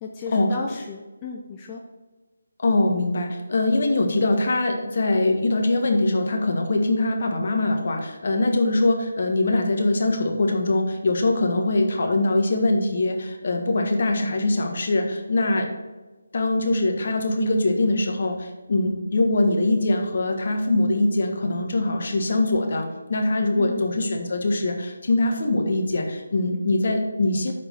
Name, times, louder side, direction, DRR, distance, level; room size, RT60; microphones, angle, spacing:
voice 1, 0.0-1.8 23.6-24.0, left 4 dB, 20° left, -1 dB, 0.6 m, -34 dB
voice 2, 2.6-15.7 16.3-27.5, left 2 dB, 55° left, 3 dB, 1.5 m, -22 dB
6.5 x 5.0 x 5.9 m, 1.2 s
figure-of-eight pair, 160°, 0 cm